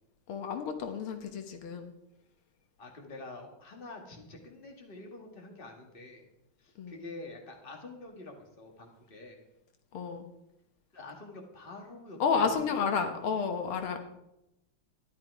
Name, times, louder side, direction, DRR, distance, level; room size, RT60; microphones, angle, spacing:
voice 1, 0.3-1.9 6.8-7.0 9.9-10.3 12.2-14.0, left 5 dB, 85° left, 6 dB, 2.1 m, -31 dB
voice 2, 2.8-6.3 6.6-9.4 10.9-13.1, left 2 dB, 25° left, 2 dB, 2.0 m, -47 dB
13.0 x 11.0 x 4.8 m, 0.87 s
omnidirectional pair, 2.3 m